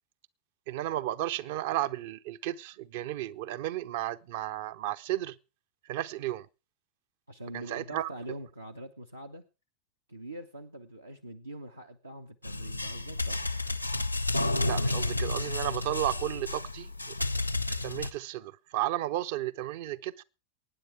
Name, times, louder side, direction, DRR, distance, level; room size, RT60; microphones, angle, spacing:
voice 1, 0.7-5.4 5.8-6.5 7.5-8.1 14.6-17.1 17.7-20.2, right 14 dB, 50° right, 0.6 m, -33 dB
voice 2, 7.3-9.4 10.1-13.4, right 1 dB, 80° right, 0.9 m, -43 dB
sound 1, 12.4-18.1, left 2 dB, 90° left, 0.7 m, -31 dB
23.0 x 9.6 x 3.5 m
figure-of-eight pair, 90°, 0 cm